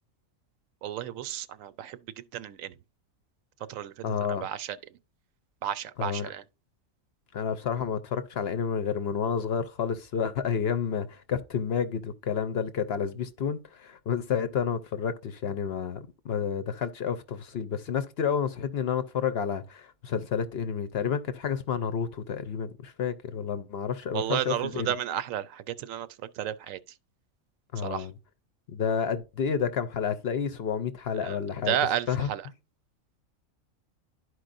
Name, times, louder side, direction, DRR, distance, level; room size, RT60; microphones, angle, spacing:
voice 1, 0.8-2.0 2.3-2.7 3.7-3.9 4.4-4.8 5.6-6.4 24.1-26.1 26.4-26.8 27.8-28.1 31.2-31.4 31.7-32.4, right 10 dB, 80° right, 1.0 m, -32 dB
voice 2, 4.0-4.5 6.0-6.3 7.3-24.9 27.7-28.1 28.7-31.8 32.1-32.3, left 7 dB, 60° left, 0.8 m, -30 dB
12.0 x 4.7 x 2.5 m
omnidirectional pair, 1.4 m